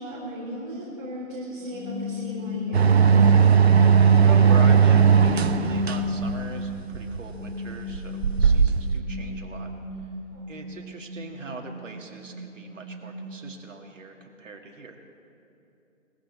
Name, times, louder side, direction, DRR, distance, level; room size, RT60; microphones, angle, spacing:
voice 1, 0.0-3.0 10.3-10.5, equal, 35° right, -9 dB, 3.8 m, -36 dB
sound 1, 1.6-6.8 7.2-13.4, left 3 dB, 15° right, 2.3 m, -31 dB
sound 2, 2.7-9.0, right 7 dB, 50° right, 0.7 m, -18 dB
voice 2, 4.2-9.7 10.5-15.0, right 3 dB, 65° right, 2 dB, 2.2 m, -40 dB
20.0 x 15.0 x 4.4 m, 2.8 s
hypercardioid pair, 165°, 40 cm